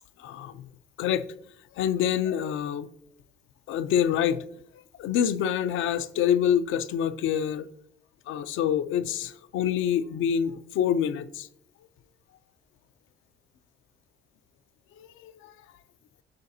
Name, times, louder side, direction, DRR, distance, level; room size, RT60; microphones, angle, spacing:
voice 1, 0.2-0.6 1.0-1.3 1.8-2.9 3.7-4.4 4.7-7.7 8.3-11.5 15.0-15.5, left 9 dB, 85° left, 0.5 m, -26 dB
8.7 x 5.8 x 2.7 m
cardioid pair, 90°, 20 cm